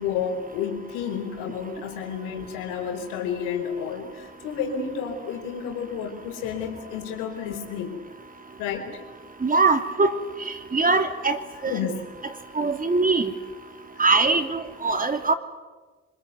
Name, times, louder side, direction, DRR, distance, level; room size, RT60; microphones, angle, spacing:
voice 1, 0.0-8.0 8.6-9.0 11.7-12.0 14.0-14.1, left 7 dB, 85° left, 3 dB, 4.6 m, -31 dB
voice 2, 9.4-10.1 10.5-11.4 11.6-11.8 12.6-13.3 14.0-15.3, right 3 dB, 25° right, 7 dB, 2.9 m, -22 dB
27.0 x 21.5 x 9.5 m, 1.3 s
supercardioid pair, 60°, 30 cm